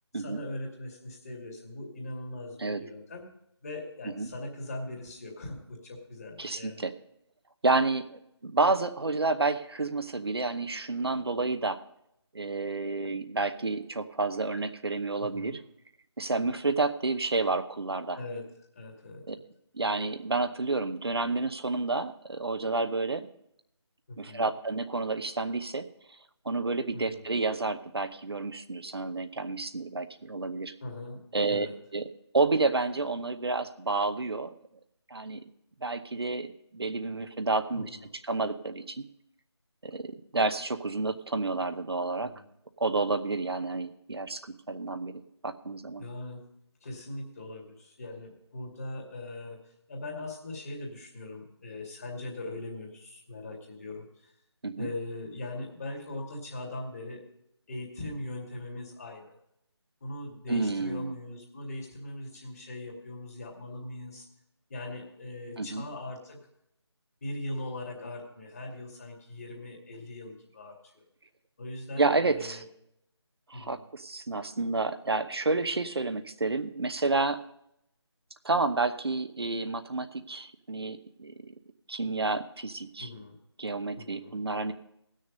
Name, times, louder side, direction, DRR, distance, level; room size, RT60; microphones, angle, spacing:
voice 1, 0.1-3.3 3.6-6.8 15.2-15.6 18.1-18.5 18.7-19.2 24.1-24.5 26.9-27.2 30.8-31.2 31.5-31.7 37.7-38.0 42.2-42.4 46.0-46.4 46.8-54.1 54.8-57.3 57.7-59.4 60.0-64.3 64.7-66.4 67.2-71.0 71.6-72.6 73.5-73.8 83.0-83.4 83.9-84.3, left 2 dB, 35° left, 0 dB, 2.4 m, -40 dB
voice 2, 6.4-6.9 7.6-11.8 12.3-15.6 16.2-18.2 19.3-19.4 19.7-23.3 24.2-25.9 26.4-30.7 31.3-31.7 31.9-32.1 32.3-34.5 35.1-35.4 35.8-36.5 36.7-37.9 38.3-39.0 39.8-42.3 42.8-46.0 54.6-54.9 60.5-61.1 65.6-65.9 72.0-72.6 73.5-77.4 78.4-81.5 81.9-83.1 83.6-84.7, right 3 dB, 60° right, 9 dB, 0.8 m, -30 dB
17.5 x 6.5 x 5.2 m, 0.77 s
figure-of-eight pair, 160°, 15 cm